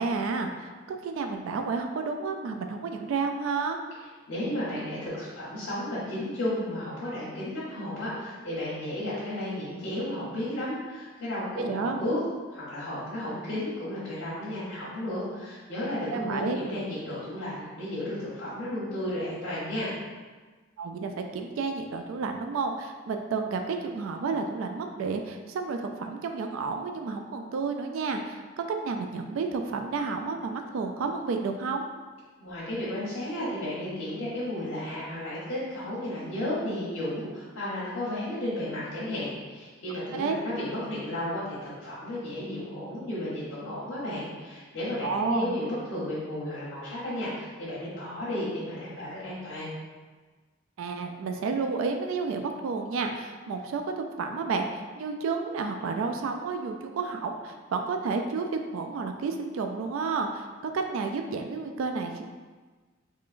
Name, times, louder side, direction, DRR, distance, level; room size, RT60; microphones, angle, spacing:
voice 1, 0.0-3.8 11.5-12.0 16.1-16.6 20.8-31.9 40.1-40.4 45.0-45.6 50.8-60.5 60.7-62.2, right 4 dB, 80° right, 4 dB, 0.3 m, -31 dB
voice 2, 4.3-12.2 12.5-19.9 32.4-49.7, left 1 dB, 80° left, -11 dB, 1.0 m, -33 dB
3.6 x 3.2 x 2.5 m, 1.4 s
head